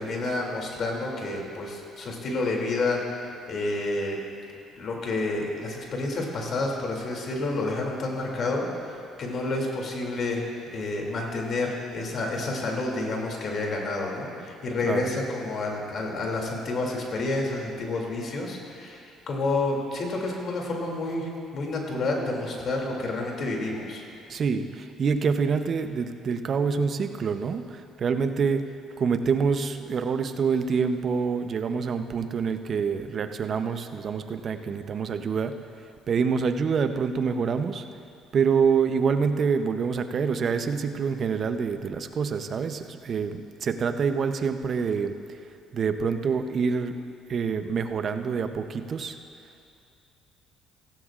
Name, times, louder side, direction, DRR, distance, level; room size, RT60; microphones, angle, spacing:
voice 1, 0.0-3.0 3.5-4.2 4.8-10.4 10.7-24.0, left 2 dB, 55° left, 0 dB, 2.6 m, -29 dB
voice 2, 14.8-15.1 24.3-28.7 29.0-35.6 36.1-37.9 38.3-45.1 45.7-49.2, right 5 dB, 50° right, 8 dB, 0.7 m, -26 dB
16.5 x 16.0 x 2.5 m, 2.5 s
supercardioid pair, 80°, 0 cm